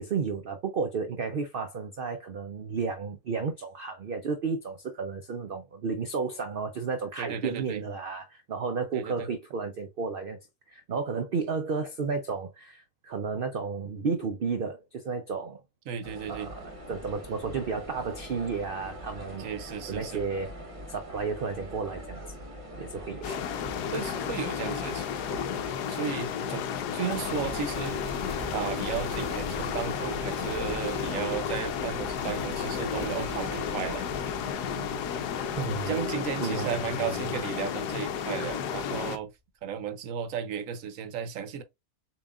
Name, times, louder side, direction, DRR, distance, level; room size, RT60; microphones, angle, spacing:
voice 1, 0.0-10.4 10.7-15.6 16.3-19.5 19.9-20.5 20.9-22.2 22.8-23.3 35.6-36.0 36.4-36.9, right 5 dB, 90° right, 0.4 m, -32 dB
voice 2, 7.2-7.8 8.9-9.3 15.9-16.5 19.4-20.3 23.3-23.4 23.9-26.6 26.9-28.2 28.5-34.0 34.7-34.9 35.5-39.3 39.6-41.6, right 7 dB, 65° right, 1.0 m, -35 dB
sound 1, 16.0-25.7, equal, 25° right, 0.9 m, -43 dB
sound 2, 23.2-39.2, left 8 dB, 85° left, 1.2 m, -32 dB
sound 3, 27.1-38.5, left 2 dB, 45° left, 2.5 m, -41 dB
6.9 x 2.8 x 2.3 m
omnidirectional pair, 1.7 m